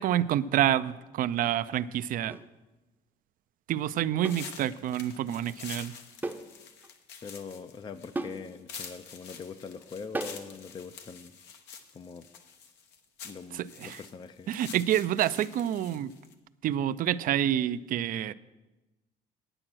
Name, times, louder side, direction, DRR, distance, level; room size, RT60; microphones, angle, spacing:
voice 1, 0.0-2.4 3.7-5.9 13.5-14.0 14.5-16.1 16.6-18.3, right 11 dB, 55° right, 15 dB, 0.4 m, -28 dB
sound 1, 2.3-2.5 4.2-4.5 6.2-6.5 6.8-6.9 8.1-8.5 10.1-10.5, right 2 dB, 10° right, 0.7 m, -35 dB
sound 2, 4.2-16.3, left 6 dB, 85° left, 1.1 m, -47 dB
voice 2, 7.2-11.3 11.9-12.3 13.2-14.5, left 5 dB, 30° left, 11 dB, 0.4 m, -43 dB
8.9 x 8.8 x 6.1 m, 1.1 s
cardioid pair, 110°, 17 cm